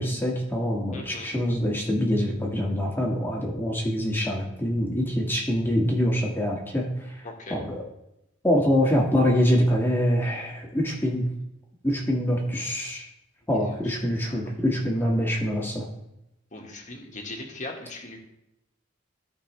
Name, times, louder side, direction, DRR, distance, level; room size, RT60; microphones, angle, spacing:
voice 1, 0.0-7.2 7.5-7.8 8.4-11.3 11.8-13.0 13.5-15.9, equal, 10° left, -2 dB, 1.8 m, -25 dB
voice 2, 0.9-1.3 7.2-7.6 13.6-14.0 16.5-18.2, left 2 dB, 40° left, 1 dB, 1.8 m, -39 dB
15.5 x 5.4 x 3.3 m, 0.86 s
head